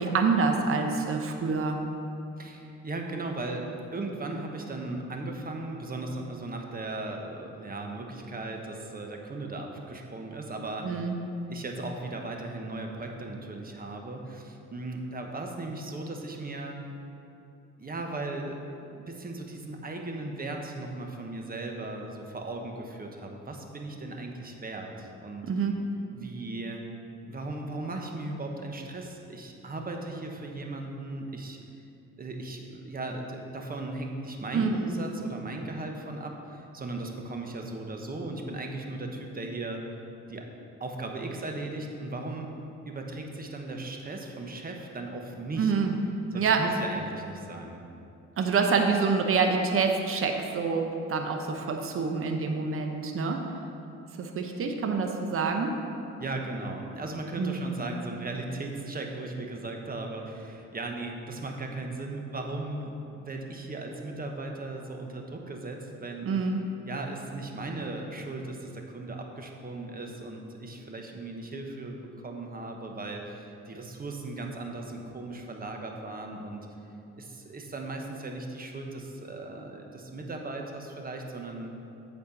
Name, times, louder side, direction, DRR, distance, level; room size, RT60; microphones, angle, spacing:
voice 1, 0.0-1.8 10.8-11.1 25.5-25.8 34.5-34.7 45.6-46.0 46.3-46.7 48.4-53.4 54.2-55.8 57.4-57.6 66.2-66.6, right 5 dB, 45° right, 4 dB, 0.8 m, -26 dB
voice 2, 2.4-11.1 11.5-16.8 17.8-25.5 26.1-26.8 27.3-31.6 32.2-39.8 40.3-40.5 40.8-42.5 42.9-45.7 46.3-47.8 56.2-66.3 66.8-76.7 77.2-81.7, right 2 dB, 30° right, 2 dB, 1.1 m, -37 dB
8.5 x 4.4 x 6.5 m, 2.7 s
cardioid pair, 90°, 30 cm